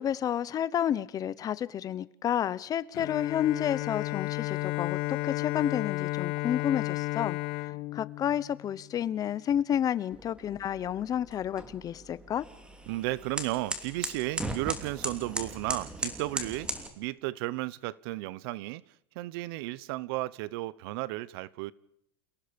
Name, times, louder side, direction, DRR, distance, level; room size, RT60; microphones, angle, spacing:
voice 1, 0.0-12.4, left 10 dB, 25° left, 0.9 m, -30 dB
Bowed string instrument, 2.9-9.0, left 20 dB, 65° left, 1.2 m, -33 dB
sound 1, 10.1-16.9, right 1 dB, 5° right, 3.0 m, -38 dB
voice 2, 12.9-21.7, right 18 dB, 65° right, 0.8 m, -34 dB
29.0 x 18.0 x 5.2 m
supercardioid pair, 145°, 13 cm